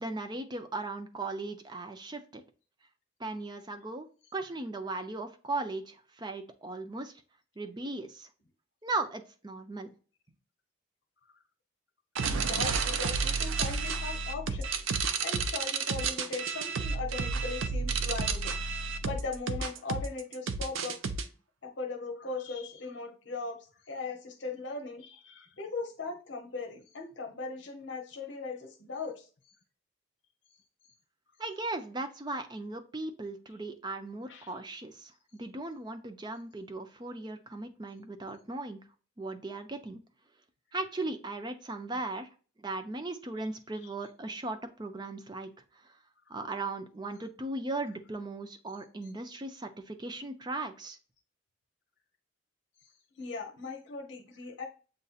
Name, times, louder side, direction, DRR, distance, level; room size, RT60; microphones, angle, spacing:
voice 1, 0.0-2.4 3.2-4.1 4.3-7.1 7.6-8.3 8.8-9.9 31.4-38.8 39.2-40.0 40.7-42.3 42.6-45.9 46.3-51.0, right 2 dB, 20° right, 7 dB, 0.5 m, -37 dB
voice 2, 12.2-14.7 15.2-18.5 19.0-21.0 21.6-23.6 23.9-29.3 34.3-34.5 43.8-43.9 53.2-54.7, left 4 dB, 65° left, 2 dB, 0.8 m, -39 dB
sound 1, 12.2-21.2, right 5 dB, 90° right, 0.5 m, -31 dB
7.6 x 2.7 x 2.4 m, 0.37 s
head